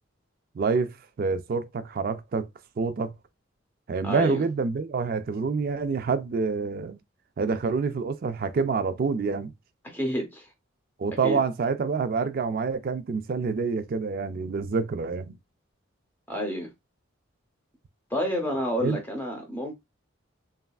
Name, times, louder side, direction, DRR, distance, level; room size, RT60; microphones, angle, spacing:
voice 1, 0.6-2.5 2.8-3.1 3.9-7.0 7.4-9.5 11.0-15.4 18.8-19.0, right 4 dB, 45° right, 0.3 m, -27 dB
voice 2, 4.0-4.4 9.9-10.5 11.2-11.4 16.3-16.7 18.1-19.8, equal, 10° left, 0.7 m, -29 dB
3.2 x 2.4 x 2.3 m
head